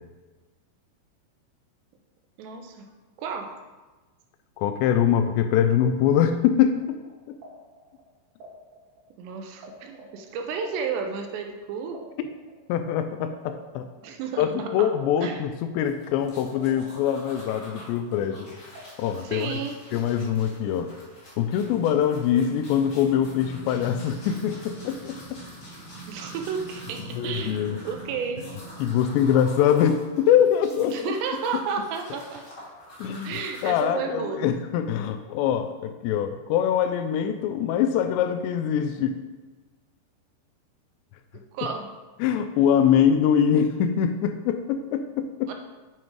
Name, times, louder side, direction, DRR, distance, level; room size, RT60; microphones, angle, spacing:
voice 1, 2.4-2.9 3.2-3.6 9.2-12.0 14.0-14.9 15.2-15.4 19.2-19.7 26.1-28.6 30.8-32.4 33.1-34.4 41.3-41.9 45.5-45.6, right 6 dB, 80° right, 4 dB, 2.8 m, -32 dB
voice 2, 4.6-7.0 7.3-7.4 12.7-13.9 14.4-18.5 19.0-19.6 19.9-20.9 21.4-25.4 27.1-27.8 28.8-31.2 33.0-39.2 42.2-45.5, left 9 dB, 85° left, 8 dB, 2.6 m, -23 dB
sound 1, 6.7-9.7 9.9-14.6 15.0-17.5 17.8-19.4, right 2 dB, 60° right, 2.9 m, -49 dB
sound 2, 15.8-33.8, left 1 dB, 35° left, 2.0 m, -47 dB
sound 3, 22.8-29.0, right 5 dB, 30° right, 2.5 m, -44 dB
7.7 x 7.4 x 4.7 m, 1.2 s
omnidirectional pair, 5.3 m